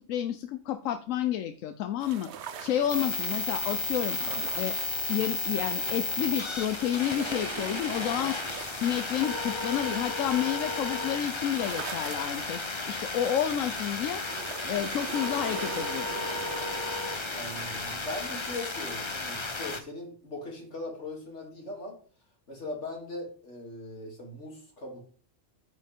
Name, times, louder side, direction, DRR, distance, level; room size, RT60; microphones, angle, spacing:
voice 1, 0.0-2.3 2.6-4.2 4.6-4.8 5.1-8.4 8.7-14.2 14.7-16.1, left 10 dB, 90° left, 10 dB, 1.0 m, -30 dB
sound 1, 2.0-19.7, right 7 dB, 65° right, 1.0 m, -44 dB
sound 2, 2.9-19.8, left 3 dB, 25° left, 0.8 m, -33 dB
voice 2, 17.3-22.0 22.5-25.0, left 2 dB, 65° left, 0 dB, 3.2 m, -40 dB
9.4 x 8.2 x 3.6 m, 0.43 s
omnidirectional pair, 1.3 m